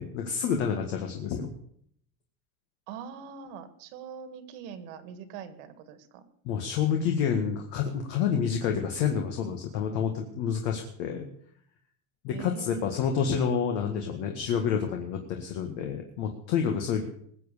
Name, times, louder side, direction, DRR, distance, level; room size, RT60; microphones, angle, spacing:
voice 1, 0.0-1.5 6.5-11.3 12.2-17.0, left 7 dB, 55° left, 3 dB, 1.9 m, -28 dB
voice 2, 2.9-6.2 12.3-13.1, right 7 dB, 60° right, 11 dB, 1.8 m, -43 dB
20.5 x 7.7 x 6.7 m, 0.65 s
supercardioid pair, 160°, 43 cm